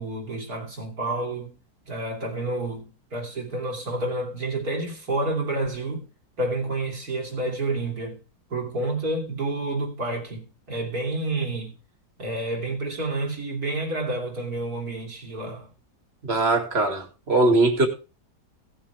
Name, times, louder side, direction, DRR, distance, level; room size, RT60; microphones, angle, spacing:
voice 1, 0.0-1.5 1.9-6.1 6.4-8.2 8.5-11.8 12.2-15.7, right 2 dB, 65° right, 3.8 m, -29 dB
voice 2, 16.3-17.9, right 2 dB, 40° right, 2.5 m, -21 dB
17.5 x 7.5 x 3.4 m
omnidirectional pair, 1.7 m